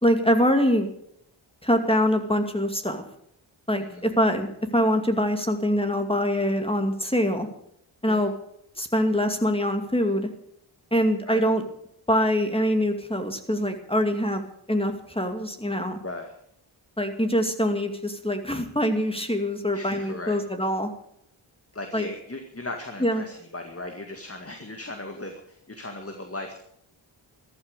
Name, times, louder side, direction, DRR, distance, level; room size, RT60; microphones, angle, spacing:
voice 1, 0.0-0.9 1.6-3.0 3.7-4.5 4.7-7.5 8.0-8.3 8.8-10.3 10.9-11.6 12.1-16.0 17.0-20.9 21.9-22.1 23.0-23.2, equal, 10° left, 6 dB, 2.4 m, -24 dB
voice 2, 19.7-20.4 21.7-26.6, left 2 dB, 30° left, 4 dB, 2.1 m, -37 dB
14.0 x 12.5 x 6.7 m, 0.71 s
wide cardioid pair, 65°, 48 cm